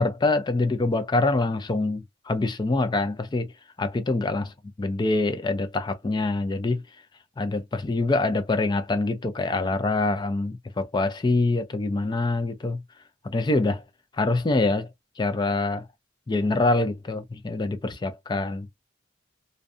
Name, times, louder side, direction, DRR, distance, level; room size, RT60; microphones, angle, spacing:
voice 1, 0.0-3.5 3.8-4.5 4.8-6.8 7.4-12.8 13.2-13.8 14.2-14.9 15.2-15.8 16.3-18.7, left 2 dB, 20° left, 0.3 m, -25 dB
2.6 x 2.2 x 2.4 m
head